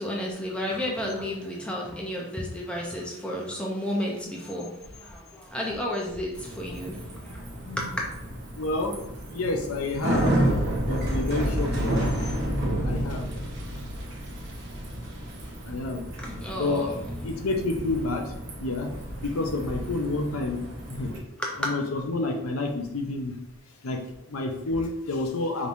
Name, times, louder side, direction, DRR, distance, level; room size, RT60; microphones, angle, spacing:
voice 1, 0.0-7.4 7.7-8.1 16.2-17.0 21.1-21.7, left 1 dB, 5° left, -3 dB, 0.6 m, -32 dB
Bicycle, 6.3-21.2, right 1 dB, 50° right, 0.9 m, -31 dB
voice 2, 7.6-7.9 8.5-9.0 9.3-10.3 10.9-12.1 12.8-13.3 15.6-16.1 16.6-16.9 17.2-20.6 20.9-21.1 21.6-23.3 23.8-25.7, left 2 dB, 80° left, 3 dB, 0.7 m, -29 dB
5.1 x 3.2 x 2.6 m, 0.87 s
head